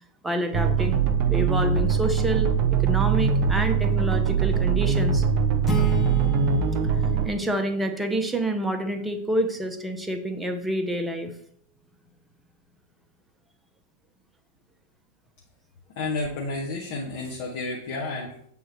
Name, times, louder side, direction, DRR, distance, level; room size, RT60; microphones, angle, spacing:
voice 1, 0.2-1.0 1.3-2.5 2.8-5.2 7.2-11.3, right 1 dB, 5° right, 5 dB, 0.8 m, -28 dB
sound 1, 0.5-7.3, right 6 dB, 40° right, 0.8 m, -22 dB
sound 2, 5.6-8.5, right 1 dB, 15° left, 1.2 m, -32 dB
voice 2, 16.0-18.5, left 3 dB, 50° left, -2 dB, 1.2 m, -31 dB
7.7 x 3.8 x 4.5 m, 0.65 s
figure-of-eight pair, 90°, 0 cm